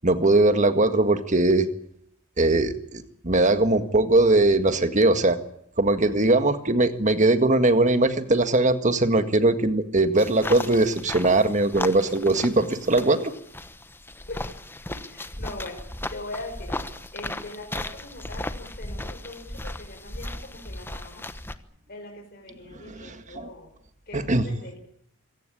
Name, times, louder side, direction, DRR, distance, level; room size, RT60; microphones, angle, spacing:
voice 1, 0.0-1.7 2.4-5.4 5.8-13.3 22.7-23.5 24.1-24.5, right 2 dB, 35° right, 10 dB, 1.8 m, -21 dB
sound 1, 10.2-21.5, left 1 dB, 10° left, 1.1 m, -36 dB
voice 2, 14.9-15.8 16.1-21.2 21.9-23.7 24.1-24.8, left 2 dB, 45° left, 2 dB, 4.6 m, -41 dB
25.5 x 17.0 x 8.7 m, 0.74 s
head